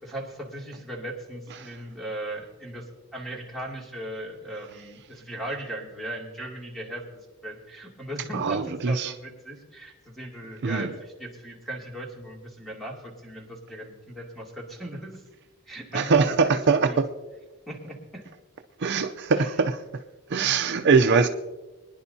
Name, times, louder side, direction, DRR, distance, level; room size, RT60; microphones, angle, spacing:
voice 1, 0.0-15.2 15.7-17.0 17.7-18.2 19.3-19.5 20.6-21.2, right 1 dB, ahead, -2 dB, 2.5 m, -38 dB
voice 2, 8.3-9.1 10.6-10.9 15.9-17.0 18.8-19.8 20.3-21.3, right 5 dB, 55° right, 7 dB, 0.5 m, -22 dB
24.0 x 10.5 x 2.8 m, 1.2 s
head